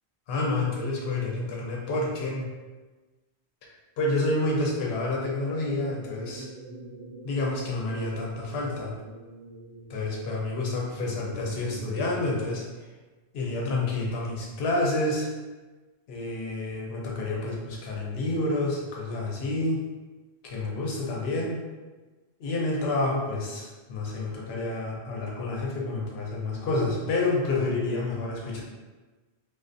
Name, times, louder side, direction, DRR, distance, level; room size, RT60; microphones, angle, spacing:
voice 1, 0.3-2.5 4.0-6.5 7.2-8.9 9.9-12.7 13.3-15.3 16.1-19.8 20.4-21.6 22.4-28.6, left 2 dB, 70° left, -2 dB, 0.8 m, -29 dB
sound 1, 5.3-12.4, right 2 dB, 60° right, 0.4 m, -44 dB
2.3 x 2.3 x 2.5 m, 1.2 s
omnidirectional pair, 1.1 m